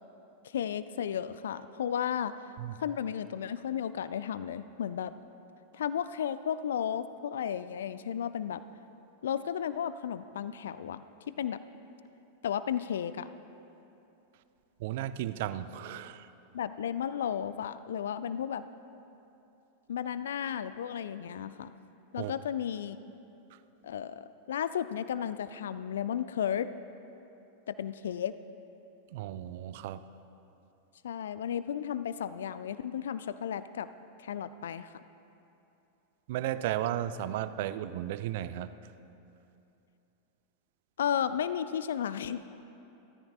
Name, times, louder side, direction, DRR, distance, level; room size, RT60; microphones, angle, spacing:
voice 1, 0.4-2.3 2.8-5.1 5.7-8.6 9.2-11.6 12.4-13.3 16.5-18.6 19.9-21.7 22.1-23.0 23.8-26.7 27.7-28.3 31.0-33.9 34.2-34.9 41.0-42.4, left 9 dB, 60° left, 14 dB, 0.4 m, -33 dB
voice 2, 14.8-16.3 22.2-22.3 29.1-30.0 36.3-38.7, right 12 dB, 50° right, 13 dB, 0.5 m, -34 dB
28.5 x 13.5 x 2.4 m, 2.9 s
figure-of-eight pair, 90°, 0 cm